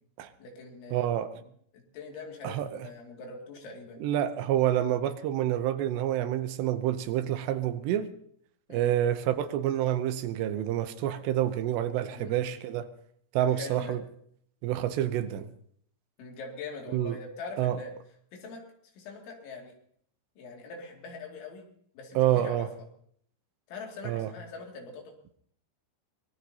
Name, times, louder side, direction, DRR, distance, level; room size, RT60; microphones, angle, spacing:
voice 1, 0.4-1.4 1.9-4.0 8.7-8.9 12.1-12.3 13.4-14.0 16.2-17.9 18.3-18.6 19.0-19.7 20.4-21.7 21.9-22.7 23.7-25.0, left 3 dB, 85° left, 0 dB, 4.9 m, -42 dB
voice 2, 0.9-1.3 2.4-2.9 4.0-8.1 8.7-12.9 13.3-14.0 14.6-15.5 16.9-17.2 17.6-17.8 22.2-22.7 24.0-24.3, right 12 dB, 80° right, 10 dB, 2.9 m, -28 dB
24.0 x 19.5 x 2.9 m, 0.64 s
omnidirectional pair, 5.2 m